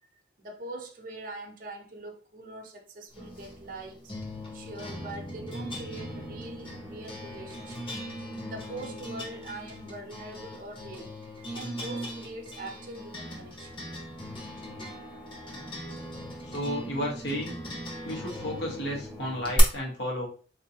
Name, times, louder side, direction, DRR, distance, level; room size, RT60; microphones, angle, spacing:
voice 1, 0.4-4.1 4.5-8.0 8.4-11.1 11.5-13.7, right 2 dB, 50° right, 0.7 m, -43 dB
sound 1, 3.1-19.6, equal, 30° left, 1.0 m, -39 dB
voice 2, 16.4-17.6 18.0-20.3, equal, 80° left, 1.2 m, -33 dB
3.8 x 2.7 x 2.8 m
head